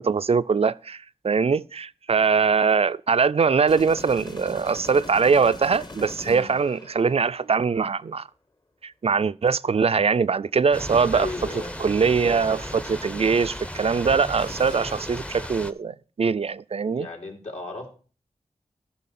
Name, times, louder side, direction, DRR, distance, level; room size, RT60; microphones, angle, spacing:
voice 1, 0.0-8.3 8.8-11.3 11.8-17.1, right 5 dB, 55° right, 0.3 m, -22 dB
sound 1, 3.7-7.7 14.4-14.8, left 2 dB, 35° left, 1.0 m, -41 dB
Thunder / Rain, 10.7-15.7, left 1 dB, 10° left, 0.6 m, -35 dB
voice 2, 11.1-11.7 16.9-17.9, left 2 dB, 70° left, 2.9 m, -34 dB
14.0 x 5.8 x 4.2 m
wide cardioid pair, 60°, 12 cm